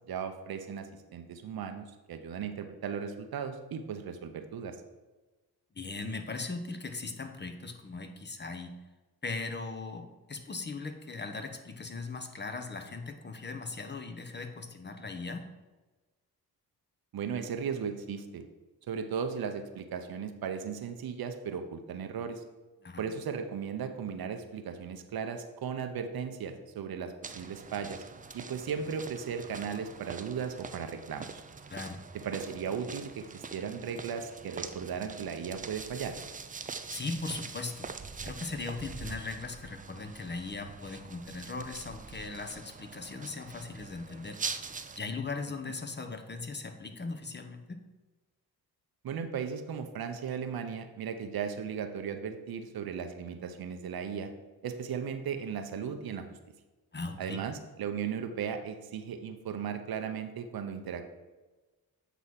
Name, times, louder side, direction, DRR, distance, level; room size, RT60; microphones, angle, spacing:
voice 1, 0.1-4.8 17.1-18.4 18.9-22.4 23.0-28.0 28.3-31.4 32.2-36.1 45.7-45.8 49.0-54.3 54.6-56.4 57.2-61.0, right 7 dB, 65° right, 7 dB, 0.8 m, -36 dB
voice 2, 5.8-8.8 9.2-15.5 22.8-23.1 31.7-32.0 36.9-37.9 38.2-44.4 45.0-47.8 56.9-57.4, left 3 dB, 25° left, 6 dB, 0.8 m, -39 dB
sound 1, 27.2-45.0, right 5 dB, 20° right, 0.4 m, -44 dB
8.2 x 3.1 x 5.6 m, 1.2 s
cardioid pair, 65°, 39 cm